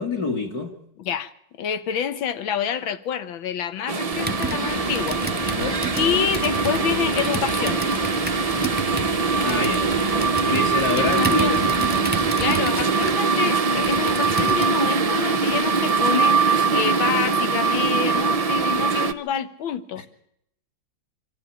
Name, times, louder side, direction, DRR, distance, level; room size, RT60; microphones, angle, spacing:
voice 1, 0.0-0.8 5.5-5.8 9.4-9.9 10.5-11.8, left 3 dB, 50° left, 2.8 m, -26 dB
voice 2, 1.0-1.3 1.6-5.2 5.9-7.8 11.0-11.6 12.4-20.1, left 8 dB, 85° left, 1.9 m, -27 dB
sound 1, 3.9-19.1, right 4 dB, 70° right, 0.3 m, -22 dB
Computer keyboard, 4.1-14.9, right 3 dB, 5° right, 0.9 m, -32 dB
sound 2, 4.7-12.0, left 3 dB, 35° left, 1.7 m, -36 dB
25.0 x 13.5 x 8.8 m
omnidirectional pair, 2.1 m